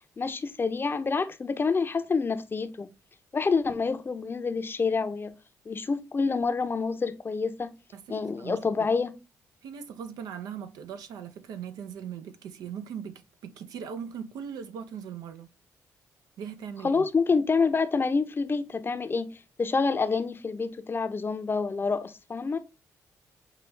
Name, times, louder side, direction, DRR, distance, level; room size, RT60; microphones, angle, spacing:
voice 1, 0.2-2.9 3.3-5.3 5.7-7.7 8.1-9.1 16.8-22.6, left 4 dB, 35° left, 0.6 m, -27 dB
voice 2, 7.9-8.6 9.6-15.5 16.4-17.1, right 7 dB, 80° right, 0.6 m, -39 dB
5.6 x 2.3 x 3.2 m
supercardioid pair, 60°, 6 cm